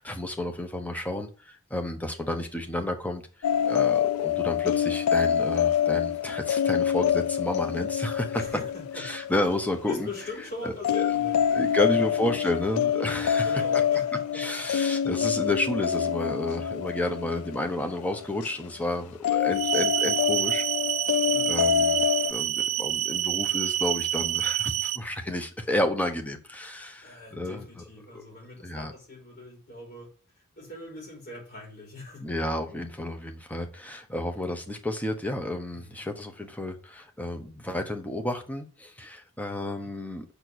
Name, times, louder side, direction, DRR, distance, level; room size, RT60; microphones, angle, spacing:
voice 1, 0.0-3.2 3.7-8.4 9.0-10.1 10.6-11.1 11.5-13.6 14.3-20.6 21.5-27.6 28.1-28.2 28.6-28.9 32.2-40.2, left 1 dB, 5° left, 0.8 m, -31 dB
sound 1, 3.4-10.2 10.8-18.5 19.2-22.3, left 9 dB, 70° left, 0.3 m, -26 dB
voice 2, 8.3-9.0 9.9-12.4 13.3-14.4 21.3-21.8 27.0-30.1 30.6-32.2 35.7-36.0 39.5-39.9, left 3 dB, 45° left, 4.8 m, -42 dB
sound 2, 19.5-25.0, right 13 dB, 70° right, 0.5 m, -27 dB
6.7 x 4.5 x 6.2 m
head